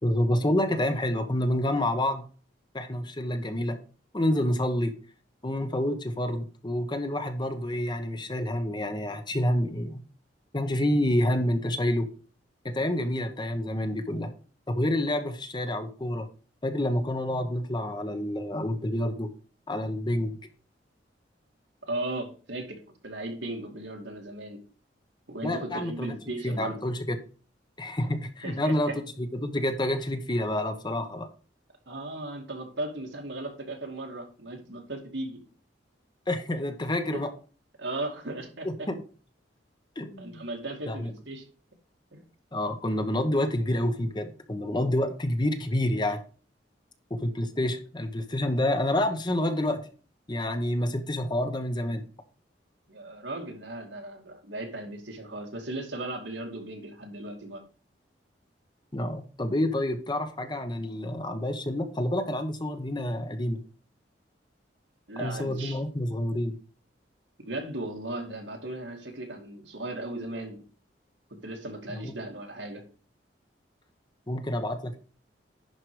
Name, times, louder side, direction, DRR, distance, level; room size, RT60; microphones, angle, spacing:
voice 1, 0.0-2.3 2.7-3.8 4.1-4.9 5.4-10.0 10.5-12.1 12.6-14.3 14.7-16.3 16.6-19.3 19.7-20.4 25.4-26.2 26.4-27.2 27.8-28.9 29.2-31.3 36.3-37.3 38.6-38.9 40.0-40.4 40.9-41.1 42.5-46.2 47.1-49.9 50.3-52.0 58.9-63.6 65.2-66.6 71.9-72.1 74.3-75.0, left 1 dB, 25° left, 7 dB, 1.1 m, -28 dB
voice 2, 21.8-24.6 25.3-26.8 28.4-29.0 31.9-35.4 37.1-37.2 37.8-38.9 40.2-41.5 42.1-42.2 52.9-57.6 65.1-65.8 67.4-70.6 71.3-72.8, right 2 dB, 85° right, 2 dB, 2.5 m, -36 dB
11.0 x 4.8 x 4.9 m, 0.39 s
head